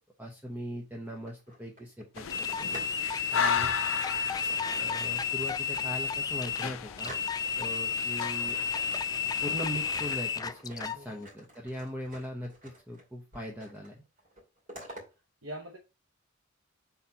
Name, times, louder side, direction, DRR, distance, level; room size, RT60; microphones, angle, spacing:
voice 1, 0.2-2.2 2.6-2.7 3.3-3.7 4.8-7.1 7.6-8.6 9.4-14.0, equal, 10° right, 0.9 m, -40 dB
sound 1, 1.0-3.0 3.3-3.7 4.5-5.3 5.8-5.9 6.2-7.7 8.1-9.6 9.9-13.0 13.3-13.9 14.2-15.0, equal, 40° right, 2.5 m, -49 dB
sound 2, 2.2-10.2, left 7 dB, 75° left, 0.5 m, -36 dB
sound 3, 2.3-11.0, left 6 dB, 20° left, 0.3 m, -32 dB
voice 2, 10.9-11.2 14.7-15.0 15.4-15.8, right 1 dB, 70° right, 1.0 m, -44 dB
4.3 x 4.1 x 5.7 m
head